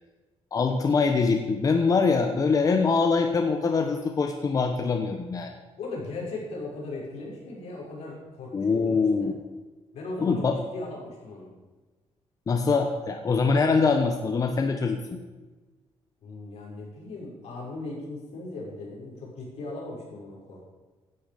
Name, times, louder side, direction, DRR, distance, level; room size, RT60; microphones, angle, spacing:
voice 1, 0.5-5.5 8.5-9.3 10.2-10.6 12.5-15.2, left 4 dB, 35° left, 5 dB, 1.1 m, -23 dB
voice 2, 5.8-9.3 9.9-11.5 16.2-20.6, left 2 dB, 85° left, -3 dB, 5.9 m, -38 dB
16.0 x 11.5 x 5.2 m, 1.2 s
cardioid pair, 155°, 11 cm